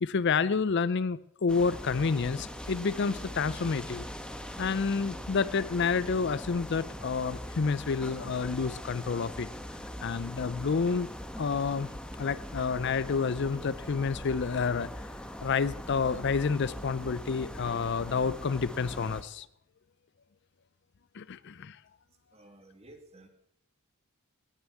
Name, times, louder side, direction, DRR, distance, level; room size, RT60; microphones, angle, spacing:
voice 1, 0.0-4.0 4.6-9.5 10.0-11.1 11.4-11.9 12.2-14.9 15.4-19.5 21.2-21.8, left 5 dB, 55° left, 17 dB, 0.5 m, -29 dB
sound 1, 1.5-19.2, equal, 5° left, 1.2 m, -41 dB
voice 2, 22.3-23.3, right 1 dB, 30° right, 5 dB, 2.2 m, -53 dB
18.0 x 7.1 x 8.5 m, 0.73 s
head